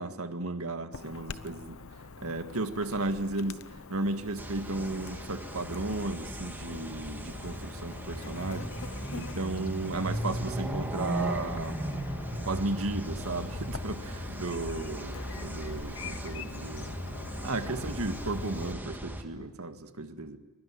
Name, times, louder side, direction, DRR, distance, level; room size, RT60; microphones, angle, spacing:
voice 1, 0.0-1.8 2.2-3.6 3.9-8.7 9.1-11.8 12.4-16.9 17.4-20.4, right 2 dB, 75° right, 8 dB, 1.9 m, -34 dB
Chirp tweet / Buzz, 0.9-18.7, left 4 dB, 65° left, 0.9 m, -44 dB
sound 1, 4.4-19.2, right 1 dB, 10° right, 2.3 m, -37 dB
24.0 x 22.0 x 10.0 m, 1.1 s
head